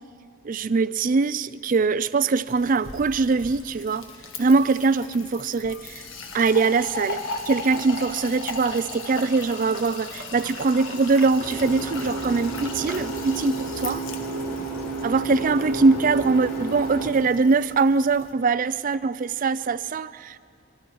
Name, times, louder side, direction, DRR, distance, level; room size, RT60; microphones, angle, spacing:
voice 1, 0.4-4.1 4.4-6.0 6.3-14.0 15.0-20.4, right 4 dB, 40° right, 16 dB, 0.4 m, -22 dB
Fill (with liquid), 2.5-18.3, left 3 dB, 75° left, 1.6 m, -38 dB
sound 1, 11.4-17.1, right 3 dB, 50° left, 3.6 m, -31 dB
25.0 x 24.0 x 4.7 m, 2.4 s
head